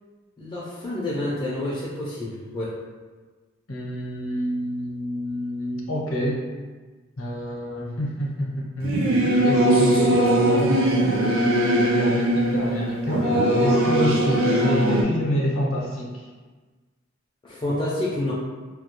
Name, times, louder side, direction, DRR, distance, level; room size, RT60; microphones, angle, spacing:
voice 1, 0.4-2.7 17.4-18.3, left 1 dB, 25° left, -8 dB, 0.3 m, -28 dB
voice 2, 3.7-6.4 7.2-9.0 9.4-11.2 11.6-16.3, equal, 75° left, -3 dB, 0.6 m, -27 dB
Singing / Musical instrument, 8.8-15.0, right 1 dB, 70° right, 0.4 m, -20 dB
2.2 x 2.1 x 2.9 m, 1.3 s
head